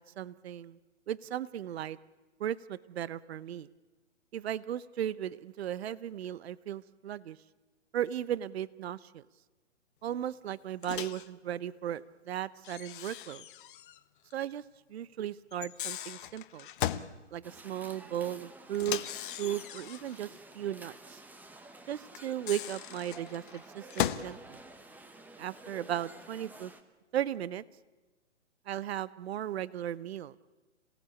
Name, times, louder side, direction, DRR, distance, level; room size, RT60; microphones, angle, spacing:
voice 1, 0.2-0.8 1.1-2.0 2.4-3.7 4.3-7.4 7.9-9.2 10.0-13.4 14.3-14.6 14.9-16.7 17.3-19.0 19.4-20.3 20.5-21.2 21.9-24.6 25.4-26.7 27.1-27.6 28.7-30.3, right 11 dB, 55° right, 19 dB, 0.9 m, -36 dB
Microwave oven, 10.8-11.3 12.6-14.0 14.3-14.4 15.5-17.1 18.7-20.2 22.2-24.3, left 12 dB, 45° left, 1.1 m, -37 dB
sound 1, 17.4-26.8, right 2 dB, 5° right, 1.0 m, -51 dB
27.5 x 18.0 x 8.4 m, 1.2 s
hypercardioid pair, 135°, 37 cm